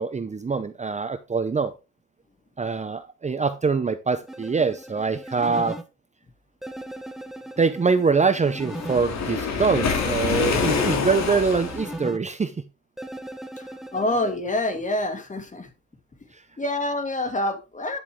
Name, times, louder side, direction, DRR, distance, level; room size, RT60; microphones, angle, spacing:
voice 1, 0.0-1.7 2.6-5.8 7.6-12.6, right 4 dB, 25° right, 0.8 m, -24 dB
Reeses Puffs, 4.3-5.8 6.6-9.0 9.8-12.2 13.0-14.4, right 1 dB, ahead, 1.3 m, -38 dB
Waves surf, 8.6-12.0, left 5 dB, 60° left, 3.1 m, -26 dB
voice 2, 13.9-15.7 16.6-18.0, left 1 dB, 25° left, 2.4 m, -26 dB
10.5 x 6.9 x 3.7 m
cardioid pair, 90°, 30 cm